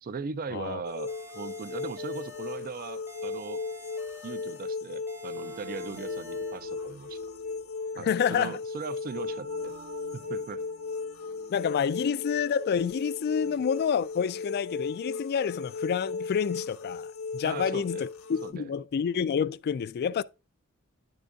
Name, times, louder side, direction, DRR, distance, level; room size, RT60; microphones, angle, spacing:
voice 1, 0.0-3.6 4.2-7.2 8.0-9.7 10.1-10.6 13.4-13.6 17.4-18.1 18.4-18.7, right 5 dB, 40° right, 0.4 m, -39 dB
voice 2, 0.5-0.8 8.0-8.6 11.5-17.1 17.3-20.2, left 7 dB, 50° left, 0.3 m, -28 dB
sound 1, 0.8-18.5, left 4 dB, 70° left, 0.8 m, -37 dB
sound 2, 1.1-2.7 3.1-4.7 5.1-6.7, equal, 10° right, 0.7 m, -48 dB
sound 3, 5.3-15.8, right 2 dB, 80° right, 1.6 m, -51 dB
10.0 x 3.9 x 3.4 m
head